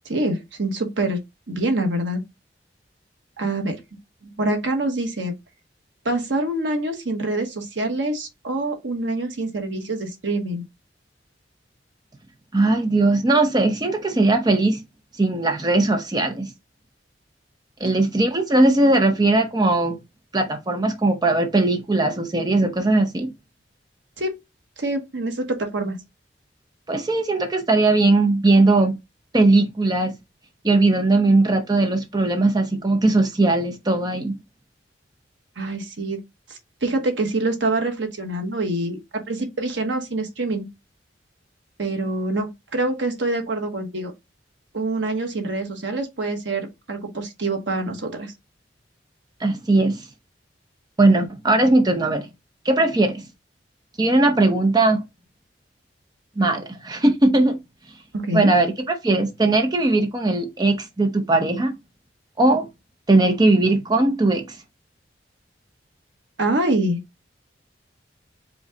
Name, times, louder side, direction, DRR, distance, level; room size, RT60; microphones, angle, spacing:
voice 1, 0.0-1.2 1.5-2.2 3.4-3.8 4.2-5.3 6.0-10.6 17.8-18.0 24.2-24.4 24.8-26.0 35.6-36.2 36.5-40.7 41.8-44.1 44.7-48.3 58.1-58.5 66.4-67.0, right 2 dB, 85° right, 1.1 m, -25 dB
voice 2, 12.5-14.8 15.2-16.5 17.8-20.0 20.3-23.3 26.9-29.0 29.3-30.1 30.6-34.4 49.4-50.0 51.0-52.3 52.6-53.2 54.0-55.0 56.4-57.6 58.3-61.7 62.4-62.7 63.1-64.6, right 2 dB, 25° right, 0.7 m, -19 dB
5.1 x 2.3 x 3.8 m
head